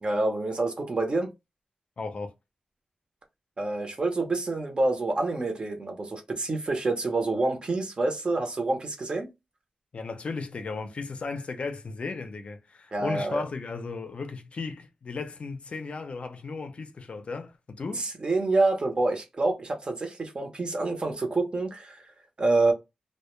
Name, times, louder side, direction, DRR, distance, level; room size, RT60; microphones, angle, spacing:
voice 1, 0.0-1.3 3.6-9.3 12.9-13.4 18.0-22.1 22.4-22.7, right 2 dB, 40° right, 0.6 m, -27 dB
voice 2, 2.0-2.3 9.9-18.1, left 4 dB, 50° left, 0.4 m, -35 dB
2.1 x 2.1 x 3.0 m
wide cardioid pair, 125°, 3 cm